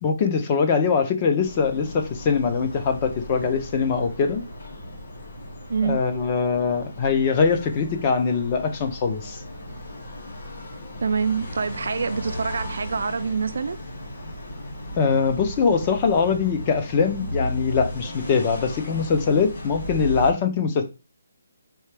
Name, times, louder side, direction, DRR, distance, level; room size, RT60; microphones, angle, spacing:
voice 1, 0.0-4.4 5.8-9.4 15.0-20.9, left 5 dB, 20° left, 0.4 m, -22 dB
sound 1, 1.4-20.3, equal, 40° left, 1.7 m, -36 dB
voice 2, 5.7-6.0 11.0-13.8, right 5 dB, 50° right, 0.4 m, -26 dB
4.5 x 3.2 x 3.3 m
hypercardioid pair, 180°, 0 cm